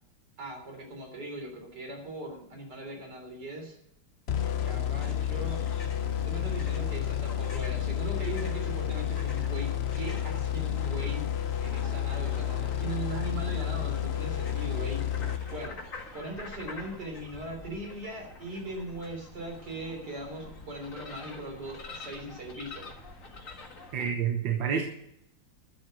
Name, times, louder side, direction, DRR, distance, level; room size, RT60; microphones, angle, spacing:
voice 1, 0.4-3.8 4.7-5.7 6.3-15.8 16.1-22.9, right 1 dB, 60° right, 2 dB, 4.2 m, -40 dB
sound 1, 4.3-15.9, left 10 dB, 75° left, 0.5 m, -31 dB
sound 2, 5.0-24.1, left 2 dB, 45° left, 2.1 m, -46 dB
voice 2, 23.9-24.8, right 7 dB, 75° right, 5 dB, 1.9 m, -28 dB
12.5 x 7.7 x 8.1 m, 0.79 s
omnidirectional pair, 2.0 m